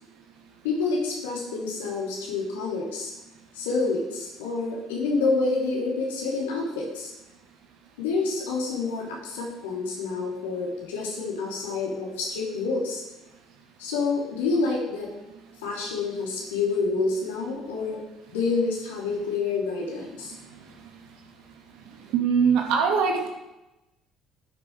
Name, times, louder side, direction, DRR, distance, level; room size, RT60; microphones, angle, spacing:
voice 1, 0.6-3.1 3.5-7.1 8.0-13.0 13.8-15.1 15.6-18.0 18.3-20.3, left 3 dB, 75° left, -2 dB, 3.2 m, -28 dB
voice 2, 22.1-23.3, right 6 dB, 65° right, 2 dB, 2.2 m, -21 dB
12.0 x 7.1 x 4.8 m, 0.96 s
figure-of-eight pair, 55°, 0 cm